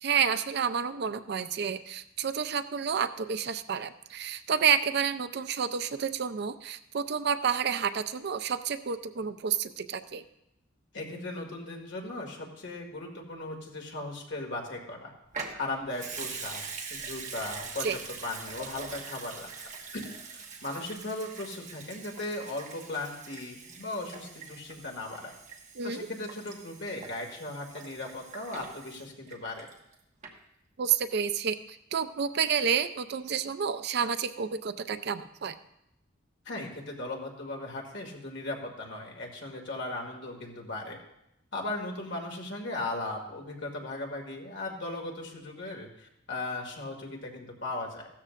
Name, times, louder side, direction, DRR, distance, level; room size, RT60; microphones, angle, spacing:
voice 1, 0.0-10.2 17.8-18.0 25.8-26.1 30.8-35.5, right 7 dB, 55° right, 11 dB, 0.5 m, -30 dB
voice 2, 10.9-15.1 15.6-16.6 16.9-20.0 20.3-25.3 25.8-29.7 36.5-41.0 41.5-48.1, left 2 dB, 60° left, 0 dB, 2.2 m, -37 dB
Water tap faucet / Sink (filling or washing) / Liquid, 15.3-29.9 30.2-30.3, right 5 dB, 35° right, 1.2 m, -43 dB
15.5 x 13.0 x 2.5 m, 0.81 s
head